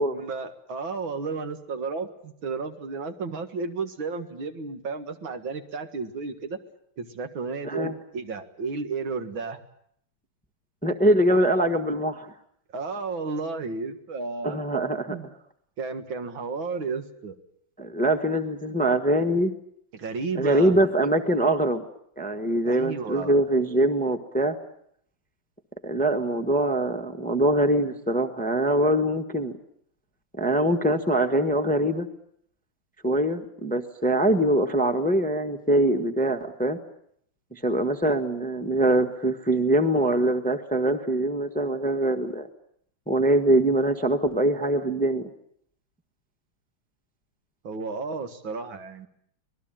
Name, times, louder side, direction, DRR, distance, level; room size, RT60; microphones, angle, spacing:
voice 1, 0.1-6.6 7.0-9.6 12.7-14.6 15.1-15.3 15.8-17.4 19.9-20.7 22.7-23.4 47.6-49.1, right 4 dB, 70° right, 7 dB, 2.5 m, -33 dB
voice 2, 10.8-12.3 14.4-15.2 17.8-19.5 20.4-21.8 22.2-24.6 25.8-29.5 30.4-32.1 33.0-36.8 37.5-42.5 43.1-45.3, right 1 dB, 5° left, 8 dB, 1.1 m, -23 dB
25.5 x 20.0 x 9.0 m, 0.69 s
omnidirectional pair, 2.2 m